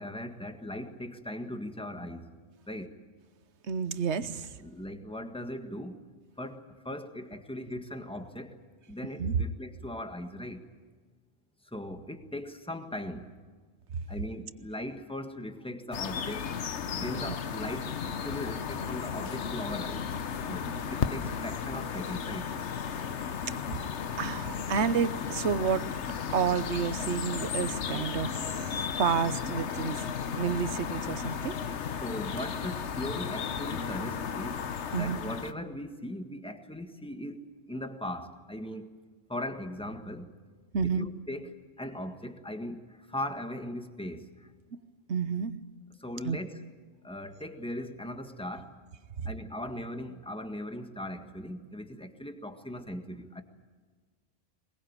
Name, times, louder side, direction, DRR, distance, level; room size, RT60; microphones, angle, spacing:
voice 1, 0.0-2.3 2.7-3.0 4.6-6.0 6.4-8.6 8.9-10.6 11.6-13.3 14.1-16.5 16.9-20.1 20.5-22.5 32.0-38.9 39.3-40.3 40.8-44.5 46.0-46.6 47.0-48.8 49.2-53.4, left 1 dB, 5° left, 7 dB, 1.6 m, -39 dB
voice 2, 3.7-4.6 9.2-9.4 23.5-23.6 24.2-25.9 26.3-30.0 30.4-31.6 34.9-35.2 40.7-41.1 45.1-45.5 46.2-46.4 49.2-49.3, right 6 dB, 70° right, 14 dB, 1.3 m, -30 dB
sound 1, 15.9-35.5, left 7 dB, 70° left, 1.2 m, -34 dB
22.0 x 21.5 x 8.9 m, 1.5 s
omnidirectional pair, 1.2 m